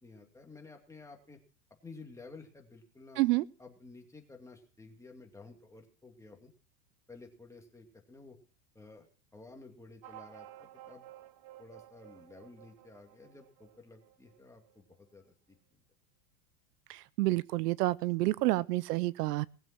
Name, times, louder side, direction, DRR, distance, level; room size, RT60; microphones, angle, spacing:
voice 1, 0.0-1.4 1.8-3.2 3.6-6.5 7.1-8.4 8.7-9.1 9.3-11.0 11.6-15.6, left 3 dB, 5° left, 2 dB, 2.4 m, -53 dB
sound 1, 10.0-15.0, right 13 dB, 45° right, 1.2 m, -54 dB
voice 2, 16.9-19.5, right 19 dB, 75° right, 21 dB, 0.7 m, -29 dB
19.5 x 7.4 x 6.0 m, 0.40 s
supercardioid pair, 145°, 48 cm